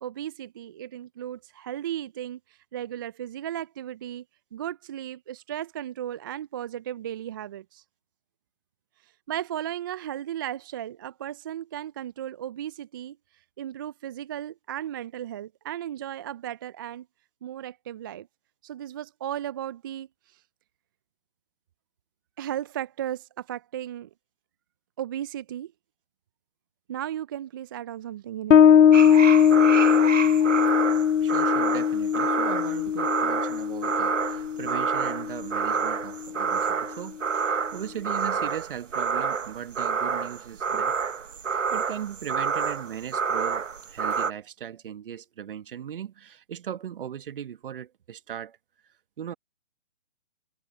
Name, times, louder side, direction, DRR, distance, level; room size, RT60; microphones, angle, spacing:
voice 1, 0.0-4.2 4.5-7.8 9.0-17.1 17.4-18.3 18.6-20.4 22.4-24.1 25.0-25.7 26.9-28.6, right 11 dB, 20° right, 0.6 m, -35 dB
Bass guitar, 28.5-35.7, left 8 dB, 85° left, 0.6 m, -20 dB
sound 1, 28.9-44.3, right 6 dB, 80° right, 1.0 m, -28 dB
voice 2, 30.7-41.0 41.5-48.6 49.2-49.3, right 9 dB, 45° right, 1.7 m, -38 dB
figure-of-eight pair, 140°, 37 cm